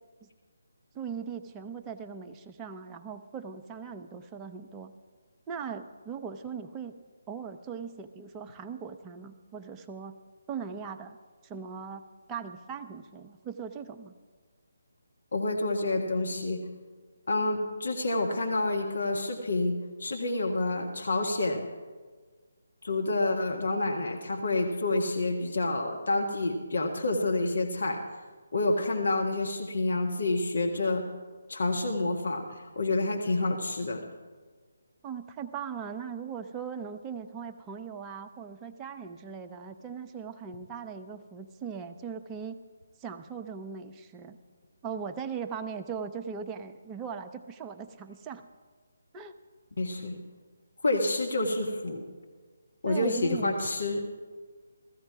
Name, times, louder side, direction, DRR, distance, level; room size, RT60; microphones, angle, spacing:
voice 1, 0.9-4.9 5.5-7.0 7.3-10.1 10.5-11.2 11.4-12.0 12.3-14.1 35.0-42.6 43.0-44.4 44.8-48.4 49.1-49.3 52.8-53.6, right 6 dB, 15° right, 5 dB, 0.6 m, -39 dB
voice 2, 15.3-16.6 17.3-21.7 22.8-28.0 28.5-31.0 31.5-34.0 49.8-50.2 50.8-52.0 52.8-54.0, left 2 dB, 65° left, 2 dB, 1.6 m, -28 dB
16.0 x 14.5 x 4.7 m, 1.5 s
figure-of-eight pair, 150°, 0 cm